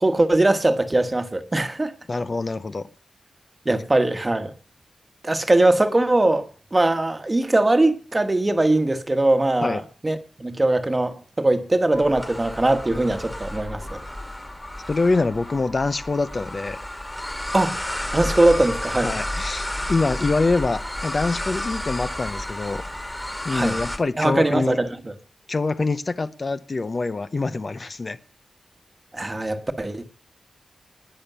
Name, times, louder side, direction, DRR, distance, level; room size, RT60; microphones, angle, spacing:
voice 1, 0.0-1.9 3.6-4.5 5.2-14.0 17.5-17.8 18.1-19.1 23.5-23.8 24.2-24.9 29.1-30.1, right 2 dB, 20° right, 1.3 m, -21 dB
voice 2, 2.1-2.9 9.6-9.8 14.9-16.8 19.0-22.8 23.4-24.8 25.5-28.2, left 3 dB, 35° left, 0.6 m, -25 dB
sound 1, 11.9-24.0, left 1 dB, 10° left, 1.9 m, -31 dB
20.5 x 6.9 x 6.7 m
wide cardioid pair, 165°, 0 cm